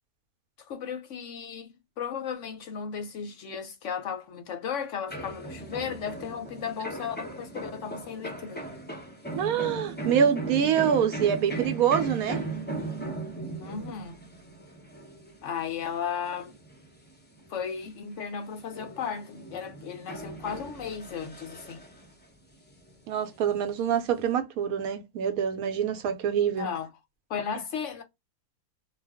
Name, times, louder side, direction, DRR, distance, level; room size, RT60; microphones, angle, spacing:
voice 1, 0.6-8.6 13.6-14.2 15.4-16.5 17.5-21.8 26.5-26.9 27.3-28.0, left 7 dB, 65° left, 0.8 m, -35 dB
sound 1, 5.1-18.2 18.6-22.2 22.6-24.3, right 2 dB, 15° left, 0.3 m, -38 dB
voice 2, 9.3-12.4 23.1-26.7, right 8 dB, 75° right, 1.0 m, -25 dB
2.5 x 2.2 x 3.4 m
omnidirectional pair, 1.6 m